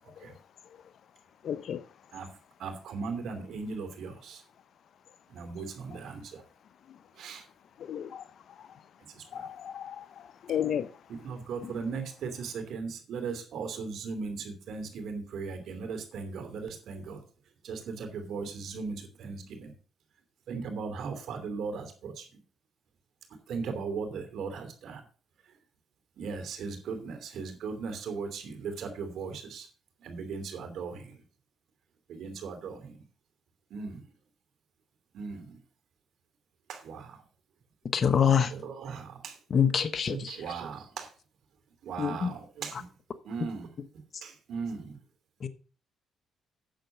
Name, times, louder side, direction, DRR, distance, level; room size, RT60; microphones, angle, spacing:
voice 1, 1.4-1.8 7.9-8.2 9.3-10.0 10.4-10.9 11.6-11.7, left 9 dB, 65° left, 0.7 m, -33 dB
voice 2, 2.6-4.4 5.3-6.3 7.2-7.4 9.3-9.5 11.2-17.2 17.6-19.7 20.5-22.2 23.5-25.0 26.2-29.6 30.0-31.0 32.1-32.9 33.7-34.0 35.1-35.5 36.7-37.1 38.5-39.3 40.1-41.1 41.8-42.9 43.2-43.7 44.2-44.9, right 5 dB, 70° right, 2.9 m, -37 dB
voice 3, 37.9-38.5 39.5-40.4 42.0-42.3 45.4-45.5, left 7 dB, 50° left, 1.1 m, -24 dB
9.0 x 7.1 x 6.7 m
cardioid pair, 90°, 0 cm